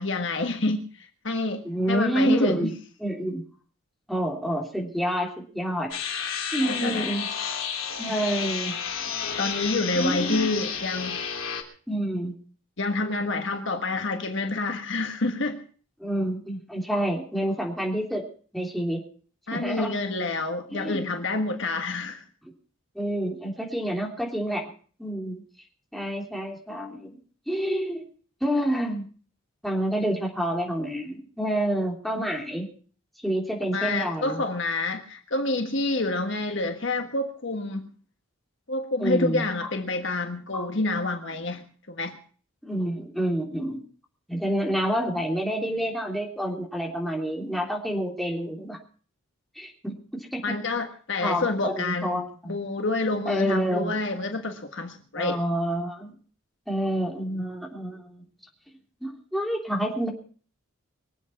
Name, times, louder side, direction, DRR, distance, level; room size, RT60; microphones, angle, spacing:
voice 1, 0.0-2.7 6.6-7.1 9.4-11.3 12.8-15.6 19.5-22.2 33.7-37.8 38.7-42.2 50.4-55.4, left 2 dB, 55° left, 1.5 m, -28 dB
voice 2, 1.6-2.7 3.0-3.4 4.1-5.9 6.5-7.3 8.0-8.7 9.9-10.5 11.9-12.4 16.0-18.2 18.5-19.0 19.5-19.9 20.7-21.0 22.9-24.7 25.0-25.4 25.9-27.2 27.5-28.0 28.4-29.0 29.6-32.7 33.2-34.4 39.0-39.4 40.5-40.7 42.6-43.8 44.3-48.8 49.5-50.4 51.2-52.6 53.2-53.9 55.2-56.1 56.7-58.2 59.0-60.1, right 1 dB, ahead, 3.2 m, -28 dB
sound 1, 5.9-11.6, left 7 dB, 75° left, 3.3 m, -31 dB
24.0 x 8.4 x 5.7 m
head